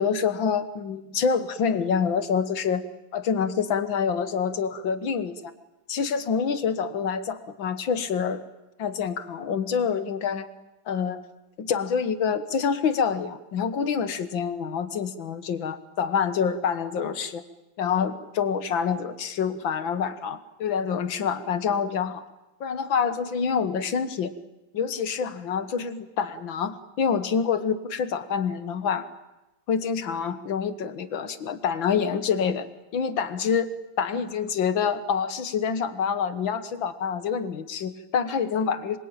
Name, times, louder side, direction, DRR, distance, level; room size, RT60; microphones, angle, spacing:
voice 1, 0.0-2.8 3.1-5.5 5.9-8.4 8.8-10.5 10.9-11.2 11.6-17.4 17.8-22.2 22.6-24.3 24.7-29.1 29.7-32.7 32.9-33.7 34.0-39.0, left 6 dB, 65° left, 11 dB, 2.1 m, -26 dB
26.5 x 22.5 x 9.0 m, 0.98 s
omnidirectional pair, 2.3 m